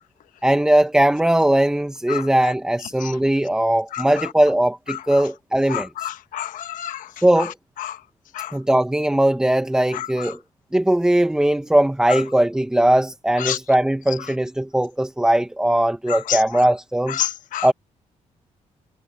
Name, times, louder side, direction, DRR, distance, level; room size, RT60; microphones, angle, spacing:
voice 1, 0.4-6.1 7.2-7.5 8.5-10.4 10.7-17.2 17.6-17.7, right 1 dB, 5° right, 1.1 m, -19 dB
voice 2, 5.7-7.0 8.4-8.5 13.4-13.6 16.3-16.4 17.2-17.7, left 12 dB, 85° left, 1.1 m, -27 dB
cardioid pair, 125°, 13 cm